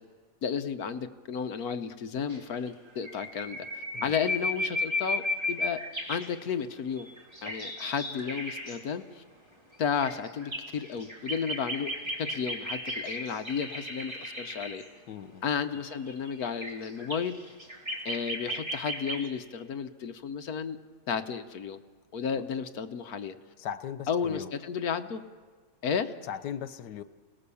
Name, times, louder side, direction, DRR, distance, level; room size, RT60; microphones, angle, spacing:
voice 1, 0.4-3.7 4.0-5.8 6.1-7.1 7.4-9.2 9.8-11.9 12.2-14.8 15.4-17.4 18.0-20.8 21.1-21.8 22.1-23.4 24.1-25.2 25.8-26.1, left 6 dB, 65° left, 9 dB, 1.3 m, -33 dB
sound 1, 2.3-2.4 2.7-2.8 3.0-6.3 7.0-8.8 9.8-14.8 15.7-19.3, left 1 dB, 15° right, 2.5 m, -35 dB
voice 2, 15.1-15.4 23.6-24.5 26.3-27.0, left 9 dB, 90° left, 12 dB, 1.5 m, -38 dB
29.0 x 18.5 x 7.0 m, 1.5 s
omnidirectional pair, 1.7 m